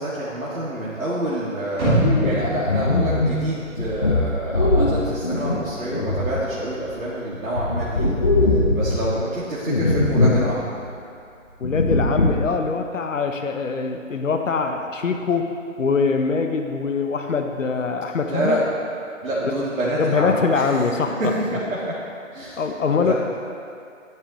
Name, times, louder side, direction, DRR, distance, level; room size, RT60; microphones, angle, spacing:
voice 1, 0.0-8.2 8.5-10.7 18.3-18.8 19.2-20.6 21.2-22.0 22.3-22.7 22.9-23.1, right 1 dB, 85° right, -8 dB, 2.0 m, -27 dB
sound 1, 1.8-3.9 4.3-4.4, equal, 20° right, 2.5 m, -24 dB
sound 2, 2.0-7.0 7.3-9.2 9.7-10.5 10.8-10.9 11.6-12.5, left 2 dB, 30° left, 0.6 m, -21 dB
voice 2, 11.6-18.6 19.4-19.5 20.0-21.2 22.6-23.1, left 4 dB, 70° left, 5 dB, 0.9 m, -23 dB
10.0 x 9.7 x 3.0 m, 2.4 s
figure-of-eight pair, 165°, 41 cm